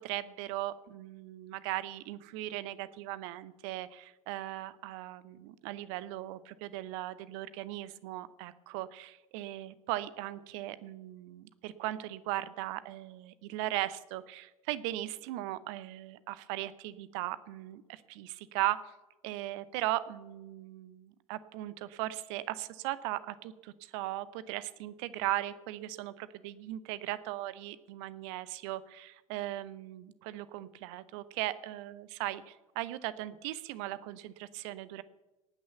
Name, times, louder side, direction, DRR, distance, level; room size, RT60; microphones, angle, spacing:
voice 1, 0.0-18.9 19.2-35.0, right 15 dB, 55° right, 16 dB, 0.8 m, -38 dB
18.0 x 6.4 x 7.0 m, 1.1 s
figure-of-eight pair, 70°, 18 cm